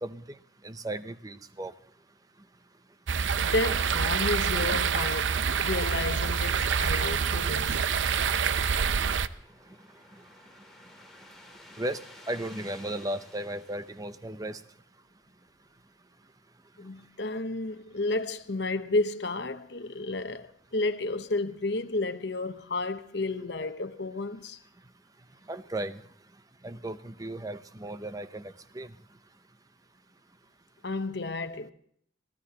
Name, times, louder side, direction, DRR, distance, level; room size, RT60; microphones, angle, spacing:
voice 1, 0.0-0.4 0.6-1.7 11.8-14.6 25.5-26.0 26.6-28.9, right 1 dB, 20° right, 0.6 m, -35 dB
sound 1, 3.1-9.3, right 6 dB, 75° right, 0.6 m, -27 dB
voice 2, 3.4-7.8 16.8-24.6 30.8-31.7, left 2 dB, 60° left, 0.9 m, -32 dB
sound 2, 8.5-14.7, left 2 dB, ahead, 2.4 m, -54 dB
25.0 x 15.5 x 2.9 m
head